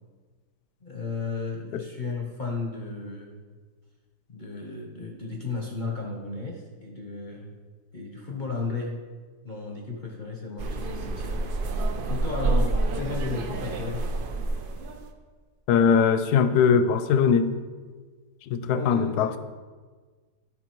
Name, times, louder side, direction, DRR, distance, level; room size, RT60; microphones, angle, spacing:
voice 1, 0.8-3.4 4.3-7.5 7.9-9.0 9.4-11.4 12.1-14.1 18.7-19.4, left 4 dB, 40° left, 0 dB, 0.7 m, -34 dB
sound 1, 10.6-15.1, right 2 dB, 75° right, 0.5 m, -28 dB
voice 2, 15.7-17.6 18.5-19.4, left 6 dB, 75° left, 11 dB, 1.1 m, -21 dB
11.0 x 5.0 x 4.5 m, 1.4 s
omnidirectional pair, 1.8 m